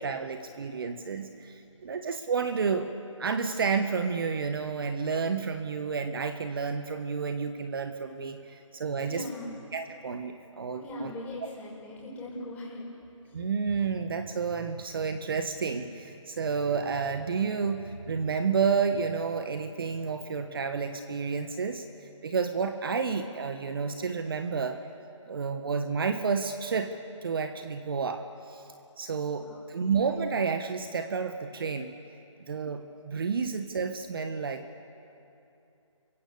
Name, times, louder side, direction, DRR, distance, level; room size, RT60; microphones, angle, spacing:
voice 1, 0.0-2.9 3.2-9.2 9.7-11.1 13.3-21.8 22.2-24.8 25.3-26.9 27.2-28.6 29.0-31.9 32.5-34.7, right 5 dB, 45° right, 8 dB, 1.4 m, -30 dB
voice 2, 9.0-9.6 10.8-12.9 13.2-13.3 29.2-29.7, left 1 dB, 10° left, -5 dB, 6.3 m, -40 dB
29.0 x 24.0 x 7.0 m, 2.9 s
figure-of-eight pair, 155°, 17 cm